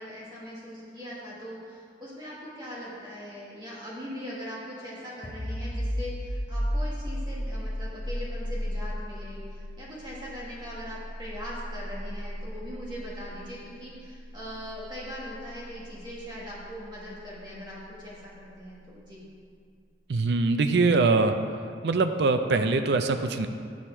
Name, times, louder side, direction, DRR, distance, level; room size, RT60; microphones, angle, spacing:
voice 1, 0.0-19.2, equal, 25° right, -7 dB, 1.5 m, -41 dB
sound 1, 5.2-16.7, equal, 40° left, 1.1 m, -35 dB
voice 2, 20.1-21.3 21.8-23.5, right 3 dB, 65° right, 8 dB, 0.4 m, -23 dB
8.6 x 6.4 x 4.4 m, 2.2 s
head